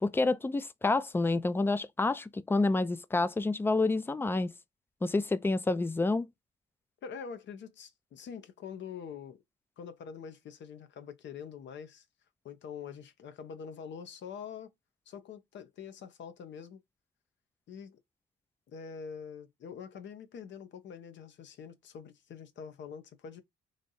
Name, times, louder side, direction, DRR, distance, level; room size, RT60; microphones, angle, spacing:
voice 1, 0.0-4.5 5.0-6.3, left 3 dB, 10° left, 0.4 m, -28 dB
voice 2, 7.0-9.4 9.8-12.0 12.4-14.7 15.1-16.8 17.7-18.0 18.7-23.4, left 7 dB, 65° left, 0.8 m, -45 dB
3.2 x 2.6 x 3.9 m
cardioid pair, 90°, 20 cm